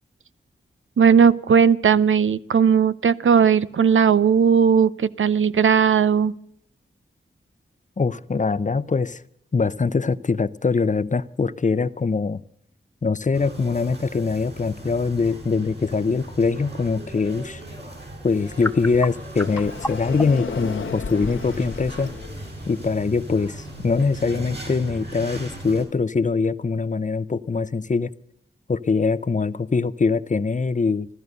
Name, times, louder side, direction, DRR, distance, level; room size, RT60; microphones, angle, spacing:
voice 1, 1.0-6.3, right 7 dB, 85° right, 15 dB, 0.7 m, -17 dB
voice 2, 8.0-9.2 9.5-12.4 13.0-17.6 18.2-22.1 22.7-28.1 28.7-31.1, left 4 dB, 40° left, 16 dB, 0.7 m, -23 dB
sound 1, 13.3-25.8, right 1 dB, 55° right, 5.4 m, -38 dB
sound 2, 18.3-24.8, left 1 dB, 10° left, 1.0 m, -38 dB
Sliding door, 19.4-22.4, left 5 dB, 75° left, 1.2 m, -34 dB
16.0 x 12.5 x 6.6 m, 0.70 s
wide cardioid pair, 100°, 20 cm